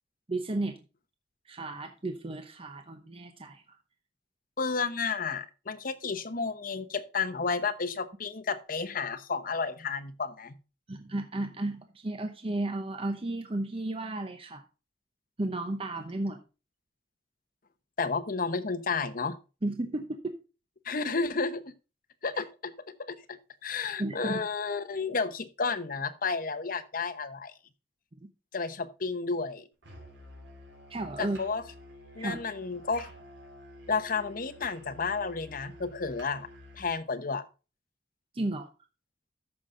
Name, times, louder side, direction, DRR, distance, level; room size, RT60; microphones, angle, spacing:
voice 1, 0.3-0.8 1.5-3.8 10.9-14.6 15.4-16.4 19.6-20.3 24.0-24.4 28.2-28.3 30.9-31.4 32.2-32.4 38.3-38.7, right 2 dB, 35° right, 6 dB, 0.8 m, -33 dB
voice 2, 4.6-10.5 18.0-19.4 20.8-21.6 22.2-27.5 28.5-29.7 31.2-31.6 32.1-33.1 33.9-36.5 36.7-37.4, left 4 dB, 55° left, 9 dB, 0.9 m, -32 dB
Musical instrument, 29.8-37.0, left 1 dB, 90° right, 3.4 m, -50 dB
13.5 x 5.8 x 3.8 m, 0.32 s
head